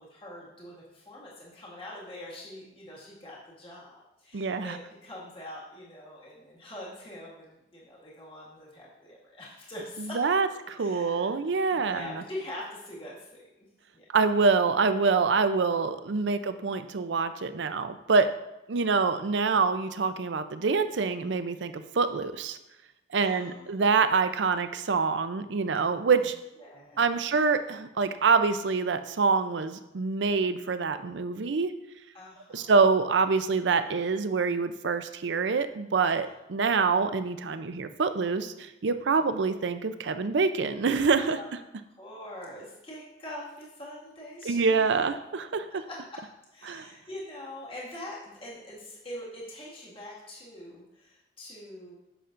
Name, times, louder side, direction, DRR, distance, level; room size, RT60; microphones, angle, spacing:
voice 1, 0.0-10.2 10.8-11.4 11.7-13.4 13.9-14.0 18.9-19.1 23.2-24.2 26.2-26.3 26.6-27.4 32.1-32.7 36.2-36.3 39.0-39.2 41.3-41.5 42.0-45.1 45.7-46.0 46.5-51.9, left 1 dB, 30° left, -6 dB, 1.9 m, -44 dB
voice 2, 4.3-4.8 10.0-12.2 14.1-18.3 18.7-22.6 23.1-26.3 27.0-31.7 32.5-41.4 44.4-45.8 46.7-46.9, right 4 dB, 80° right, 10 dB, 0.5 m, -26 dB
10.0 x 6.8 x 2.6 m, 0.92 s
head